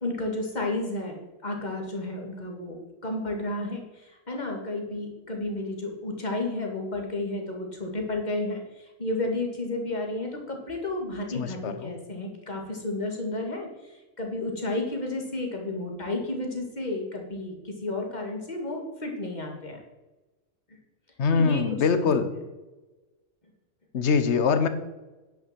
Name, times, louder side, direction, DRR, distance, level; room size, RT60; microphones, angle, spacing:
voice 1, 0.0-2.8 3.0-3.8 4.3-8.6 9.0-13.7 14.2-19.8 21.3-21.8 22.3-22.4, left 2 dB, 30° left, 1 dB, 2.4 m, -32 dB
voice 2, 11.3-11.9 21.2-22.3 23.9-24.7, left 5 dB, 55° left, 10 dB, 1.3 m, -23 dB
10.5 x 6.2 x 7.5 m, 1.1 s
omnidirectional pair, 1.5 m